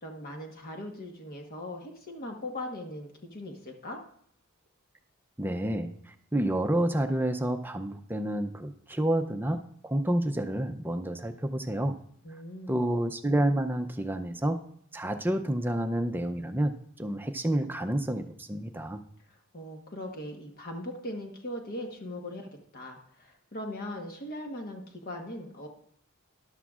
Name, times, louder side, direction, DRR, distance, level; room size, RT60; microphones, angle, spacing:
voice 1, 0.0-4.0 12.2-12.8 19.3-25.7, left 1 dB, 45° left, 2 dB, 1.3 m, -40 dB
voice 2, 5.4-12.0 12.7-14.6 14.9-19.0, right 1 dB, 10° right, 7 dB, 0.5 m, -29 dB
13.0 x 11.0 x 2.4 m, 0.66 s
head